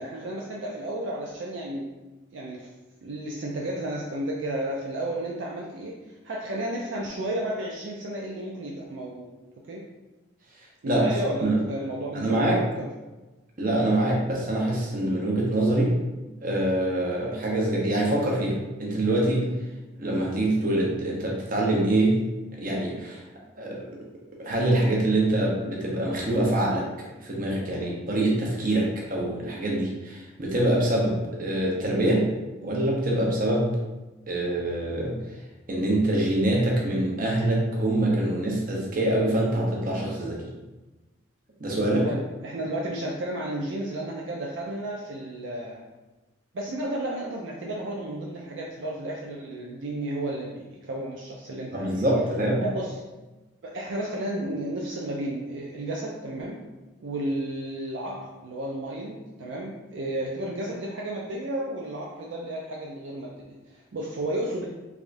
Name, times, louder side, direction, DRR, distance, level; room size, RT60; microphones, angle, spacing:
voice 1, 0.0-1.9 2.3-2.7 3.0-9.3 9.7-9.9 10.8-12.9 42.0-45.8 46.5-52.1 52.6-53.0 53.6-56.6 57.0-64.7, right 1 dB, 65° right, -3 dB, 0.4 m, -32 dB
voice 2, 12.1-12.6 13.6-15.9 16.4-19.4 20.0-22.1 22.6-23.2 23.6-23.8 24.4-26.8 27.2-32.3 32.6-33.7 34.3-35.2 35.7-40.4 41.6-42.1 51.7-52.6, right 1 dB, 45° right, -3 dB, 0.8 m, -25 dB
3.5 x 3.4 x 2.5 m, 1.1 s
head